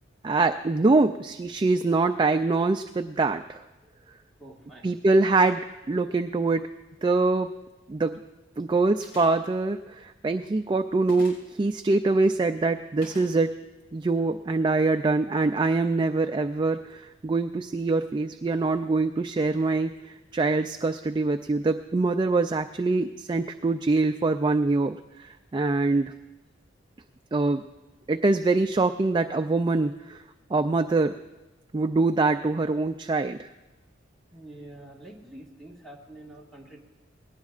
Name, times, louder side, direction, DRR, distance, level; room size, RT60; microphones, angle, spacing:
voice 1, 0.2-3.6 4.8-5.6 5.9-6.7 7.0-7.5 7.9-8.2 8.6-13.5 13.9-19.9 20.3-26.1 27.3-27.6 28.1-30.2 30.5-31.1 31.7-33.5, right 3 dB, 25° right, 7 dB, 0.3 m, -24 dB
voice 2, 4.4-5.0 8.6-8.7 10.3-10.4 34.3-36.8, right 1 dB, ahead, -2 dB, 1.8 m, -47 dB
sound 1, 9.0-9.5 11.0-11.5 13.0-13.3, left 1 dB, 70° left, 5.2 m, -44 dB
20.0 x 17.5 x 2.5 m, 1.1 s
head